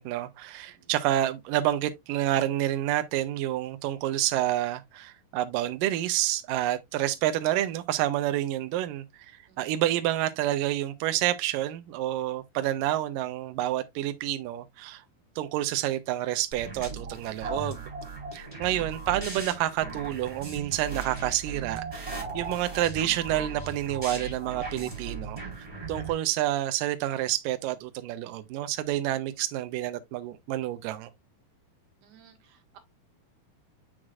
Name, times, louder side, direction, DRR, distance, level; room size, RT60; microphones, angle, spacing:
voice 1, 0.0-15.0 15.4-17.8 18.3-31.1, right 13 dB, 80° right, 2.1 m, -29 dB
sound 1, 16.5-26.1, right 3 dB, 10° right, 3.9 m, -38 dB
voice 2, 32.0-32.8, right 9 dB, 60° right, 2.8 m, -58 dB
7.3 x 6.3 x 2.4 m
omnidirectional pair, 4.3 m